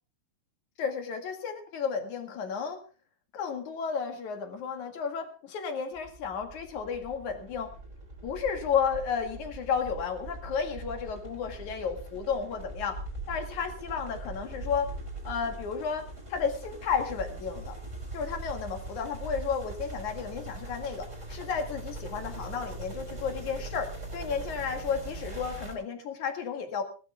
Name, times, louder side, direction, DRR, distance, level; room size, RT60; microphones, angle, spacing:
voice 1, 0.8-2.8 3.3-7.7 8.2-13.0 13.3-14.9 15.2-17.8 18.1-26.8, left 6 dB, 55° left, 5 dB, 2.9 m, -32 dB
sound 1, 5.9-25.7, right 2 dB, 15° right, 4.9 m, -41 dB
19.5 x 13.0 x 3.5 m, 0.36 s
omnidirectional pair, 4.8 m